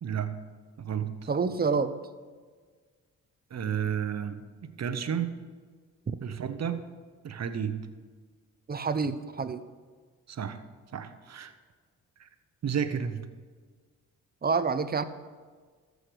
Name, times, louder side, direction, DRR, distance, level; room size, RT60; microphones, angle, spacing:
voice 1, 0.0-0.4 0.8-1.3 3.5-5.4 6.2-6.9 7.2-7.9 10.3-10.6 10.9-11.5 12.2-12.3 12.6-13.3, right 8 dB, 50° right, 10 dB, 1.0 m, -32 dB
voice 2, 1.3-1.9 6.1-6.2 8.7-9.6 14.4-15.0, right 5 dB, 25° right, 12 dB, 0.7 m, -27 dB
14.5 x 6.4 x 5.1 m, 1.5 s
supercardioid pair, 65°, 34 cm